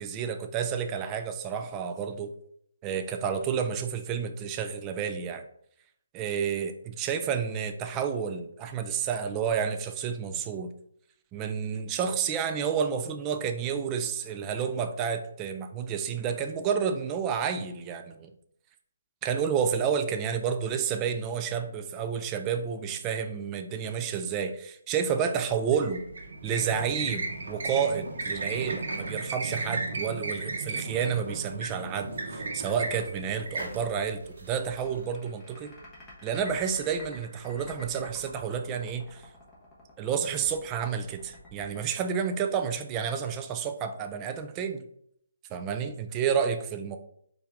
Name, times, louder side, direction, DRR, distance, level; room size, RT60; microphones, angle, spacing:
voice 1, 0.0-2.3 2.8-5.4 6.1-6.7 7.0-10.7 11.3-18.3 19.2-26.0 26.4-35.7 36.2-39.3 40.0-44.9 45.5-47.0, right 7 dB, 20° right, 7 dB, 0.3 m, -30 dB
sound 1, 25.7-35.0, right 3 dB, 70° right, 0.9 m, -35 dB
sound 2, 34.3-42.9, left 1 dB, 15° left, 1.0 m, -49 dB
4.4 x 2.5 x 3.5 m, 0.71 s
hypercardioid pair, 160°, 0 cm